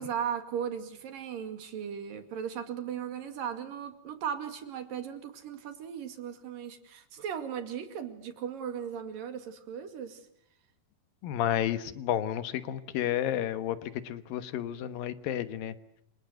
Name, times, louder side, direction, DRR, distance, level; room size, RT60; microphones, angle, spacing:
voice 1, 0.0-10.2, right 8 dB, 80° right, 8 dB, 4.0 m, -37 dB
voice 2, 11.2-15.7, left 11 dB, 90° left, 12 dB, 3.1 m, -31 dB
29.0 x 25.5 x 8.0 m, 0.75 s
omnidirectional pair, 3.9 m